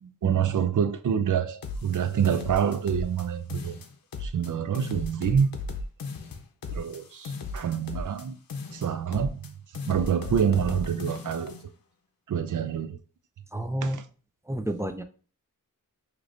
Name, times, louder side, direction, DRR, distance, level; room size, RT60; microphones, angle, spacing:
voice 1, 0.0-3.8 4.2-5.5 6.7-8.4 8.7-9.5 9.9-11.6 12.3-13.0 13.8-14.0, right 8 dB, 65° right, 0.5 m, -27 dB
sound 1, 1.6-3.2 3.5-4.5 4.7-8.2 8.5-9.5 9.7-11.6, left 3 dB, 80° left, 0.6 m, -36 dB
voice 2, 13.5-14.0 14.5-15.0, right 1 dB, 10° right, 0.4 m, -30 dB
4.9 x 3.0 x 2.5 m
wide cardioid pair, 70°, 34 cm